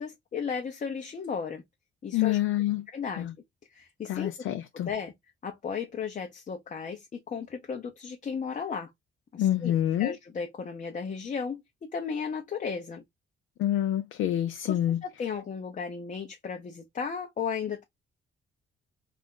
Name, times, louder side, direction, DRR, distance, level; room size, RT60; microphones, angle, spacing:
voice 1, 0.0-1.6 2.0-2.4 2.9-3.3 3.7-4.3 4.8-5.1 5.4-8.9 9.3-11.6 11.9-13.0 14.7-14.8 15.0-17.8, left 6 dB, 40° left, 0.7 m, -35 dB
voice 2, 2.1-2.9 3.2-3.3 4.1-4.9 9.4-10.2 13.6-15.0, left 12 dB, 80° left, 0.4 m, -27 dB
2.5 x 2.1 x 3.6 m
cardioid pair, 90°, 20 cm